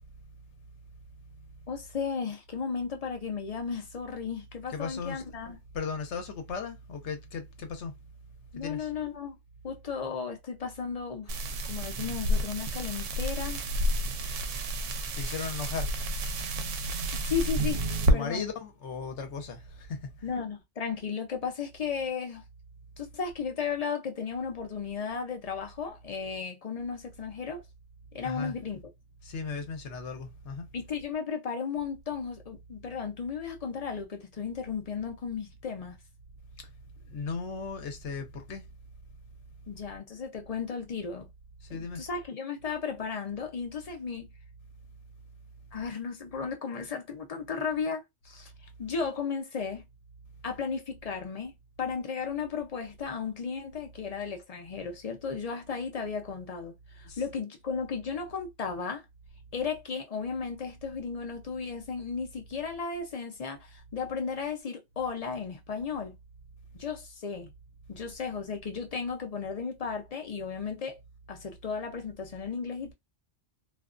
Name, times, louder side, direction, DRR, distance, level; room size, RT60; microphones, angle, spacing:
voice 1, 1.7-5.6 8.5-9.4 9.6-13.6 17.2-17.8 18.1-18.5 20.2-22.4 23.0-27.6 28.1-28.8 30.7-36.0 39.7-41.3 41.7-44.3 45.7-48.5 48.8-49.8 50.4-59.0 59.5-66.2 66.7-67.5 67.9-71.0 71.3-72.9, left 6 dB, 45° left, 0.5 m, -35 dB
voice 2, 4.7-5.2 5.7-7.9 8.5-8.9 15.1-15.9 18.1-20.1 28.2-28.5 29.2-30.7 36.6-36.7 37.1-38.6 41.7-42.0 57.0-57.2, left 5 dB, 70° left, 1.0 m, -36 dB
sound 1, 11.3-18.1, right 1 dB, 85° right, 0.9 m, -30 dB
2.5 x 2.2 x 2.4 m
omnidirectional pair, 1.2 m